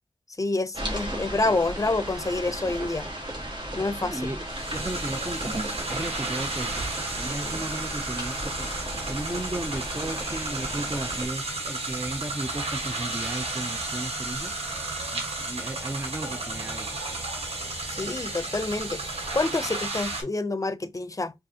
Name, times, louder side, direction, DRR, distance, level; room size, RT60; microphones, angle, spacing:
voice 1, 0.4-3.1 3.7-4.3 17.9-21.3, left 2 dB, 35° left, 0.5 m, -28 dB
sound 1, 0.7-11.3, right 1 dB, 50° right, 1.5 m, -35 dB
voice 2, 4.0-8.7 9.1-14.5 15.1-17.0, right 2 dB, 25° right, 0.5 m, -35 dB
sound 2, 4.5-20.2, right 2 dB, 80° right, 1.3 m, -33 dB
5.0 x 2.4 x 2.8 m
cardioid pair, 40°, 10 cm